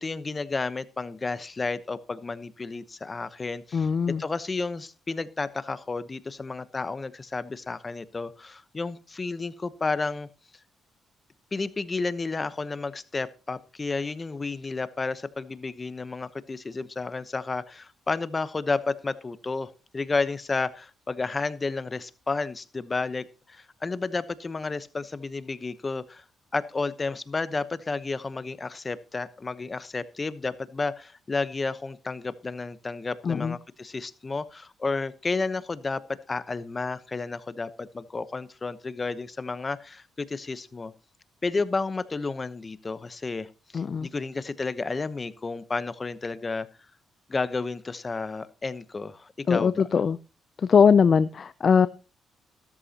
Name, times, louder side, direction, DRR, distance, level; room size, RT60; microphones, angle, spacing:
voice 1, 0.0-3.9 4.2-10.3 11.5-26.2 26.5-36.0 36.3-40.9 41.4-46.7 47.3-49.9, left 3 dB, 30° left, 1.0 m, -31 dB
voice 2, 3.7-4.2 33.3-33.5 43.7-44.1 49.5-50.2 50.7-51.9, left 6 dB, 45° left, 0.5 m, -20 dB
14.5 x 13.5 x 2.9 m
cardioid pair, 90°, 0 cm